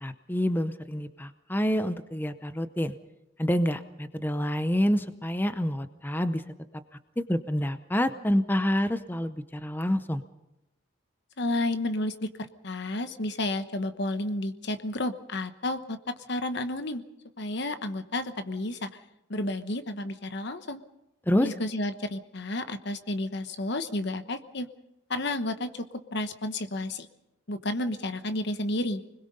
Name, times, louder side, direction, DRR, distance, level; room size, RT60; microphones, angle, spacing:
voice 1, 0.0-2.9 3.4-6.4 7.2-10.2 21.3-21.5, equal, 10° left, 11 dB, 0.7 m, -27 dB
voice 2, 11.4-17.0 17.4-19.0 19.3-20.8 21.4-24.7 25.1-27.1 27.5-29.0, left 1 dB, 55° left, 10 dB, 1.1 m, -31 dB
25.0 x 21.0 x 5.4 m, 0.89 s
head